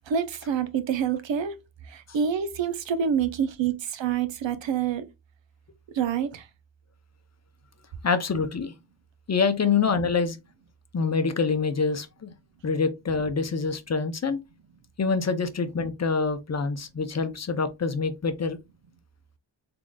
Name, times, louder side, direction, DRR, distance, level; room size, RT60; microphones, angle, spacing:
voice 1, 0.1-1.6 1.9-5.1 5.9-6.5, right 7 dB, 70° right, 0.7 m, -27 dB
voice 2, 8.0-8.7 9.3-10.4 10.9-12.3 12.6-14.4 15.0-18.6, left 5 dB, 35° left, 0.6 m, -26 dB
3.7 x 3.7 x 2.2 m
wide cardioid pair, 105°, 47 cm